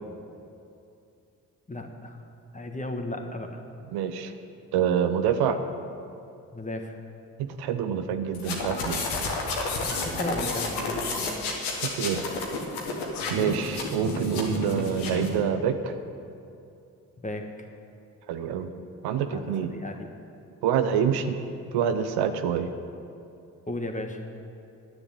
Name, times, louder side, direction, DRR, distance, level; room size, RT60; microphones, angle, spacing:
voice 1, 1.7-2.2 2.5-3.6 6.5-7.0 9.8-11.4 17.2-17.7 19.3-19.4 19.7-19.9 23.7-24.2, left 1 dB, 20° left, 4 dB, 1.6 m, -35 dB
voice 2, 3.9-4.3 4.7-5.6 7.4-9.0 11.7-12.2 13.3-15.9 18.3-18.7 19.0-19.7 20.6-21.4 21.7-22.7, right 8 dB, 75° right, 8 dB, 0.7 m, -26 dB
sound 1, 8.3-15.4, left 3 dB, 80° left, 1.6 m, -31 dB
10.0 x 7.0 x 8.4 m, 2.6 s
hypercardioid pair, 45°, 39 cm